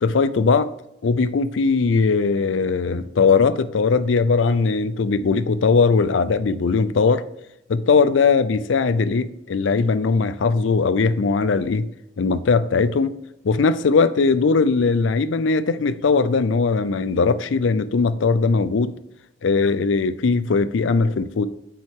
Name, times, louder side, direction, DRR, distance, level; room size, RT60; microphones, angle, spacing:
voice 1, 0.0-0.7 1.0-7.2 7.7-11.9 12.2-13.1 13.4-19.0 19.4-21.5, left 4 dB, 85° left, 0.5 m, -19 dB
8.7 x 5.5 x 3.6 m
head